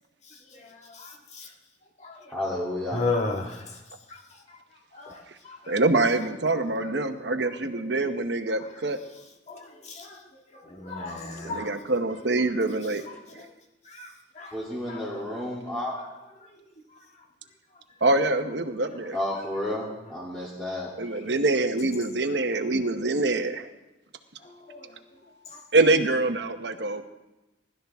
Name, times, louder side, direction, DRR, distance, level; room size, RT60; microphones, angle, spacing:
voice 1, 0.5-1.5 2.0-2.3 2.9-3.8 4.1-4.2 4.9-5.8 6.8-6.9 7.3-7.6 9.5-10.2 10.5-11.7 13.0-13.5 13.8-14.5 14.9-15.0 24.4-25.6, left 3 dB, 40° left, 0 dB, 1.7 m, -35 dB
voice 2, 2.3-3.0 14.5-15.9 19.1-20.9, left 1 dB, 5° left, -8 dB, 2.9 m, -31 dB
voice 3, 5.7-9.0 11.4-13.0 18.0-19.1 21.0-23.7 25.7-27.0, right 2 dB, 65° right, 8 dB, 1.0 m, -25 dB
20.5 x 12.5 x 3.6 m, 1.0 s
head